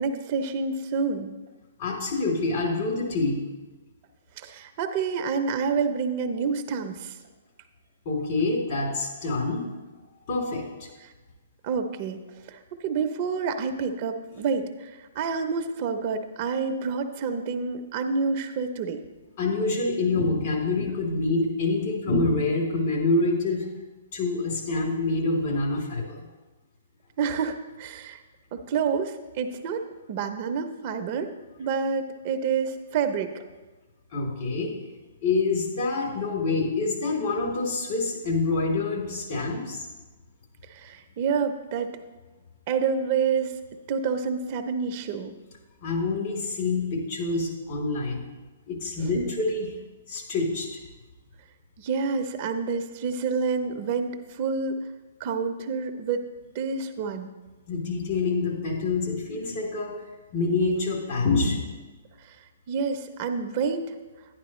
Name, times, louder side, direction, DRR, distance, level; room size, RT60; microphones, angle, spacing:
voice 1, 0.0-1.3 4.4-7.2 11.0-11.1 11.6-12.2 12.5-19.0 27.2-28.2 28.5-29.8 30.1-31.3 31.6-33.4 40.7-41.9 42.7-43.6 43.9-45.3 49.0-49.3 51.8-54.8 55.2-56.2 56.5-57.3 62.2-62.4 62.7-63.9, right 5 dB, 40° right, 6 dB, 0.7 m, -28 dB
voice 2, 1.8-3.4 8.0-9.6 10.3-10.9 19.4-23.7 24.1-26.2 34.1-34.7 35.2-39.9 45.8-48.2 48.7-49.7 50.1-50.7 57.7-60.0 60.3-61.6, left 3 dB, 50° left, -2 dB, 3.3 m, -26 dB
10.5 x 10.0 x 3.1 m, 1.2 s
hypercardioid pair, 140°, 0 cm